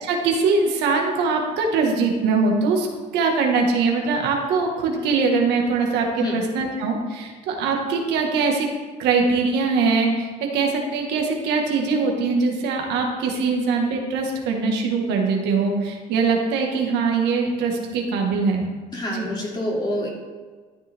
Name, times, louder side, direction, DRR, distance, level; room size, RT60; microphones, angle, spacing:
voice 1, 0.0-2.9 3.1-8.7 9.0-18.6 19.1-19.3, right 4 dB, 85° right, 1 dB, 1.6 m, -22 dB
voice 2, 18.9-20.1, left 1 dB, 25° left, -3 dB, 2.7 m, -26 dB
13.0 x 7.0 x 3.5 m, 1.5 s
cardioid pair, 110°, 17 cm